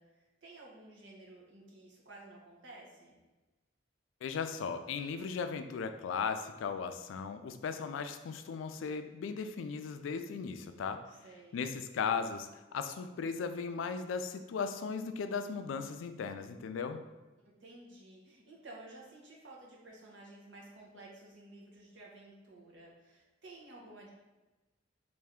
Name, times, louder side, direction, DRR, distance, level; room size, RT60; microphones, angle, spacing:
voice 1, 0.0-3.2 11.1-11.7 17.4-24.1, right 2 dB, 75° right, -3 dB, 0.9 m, -53 dB
voice 2, 4.2-11.0 11.5-17.0, left 5 dB, 90° left, 9 dB, 0.3 m, -37 dB
3.3 x 2.6 x 3.5 m, 1.1 s
head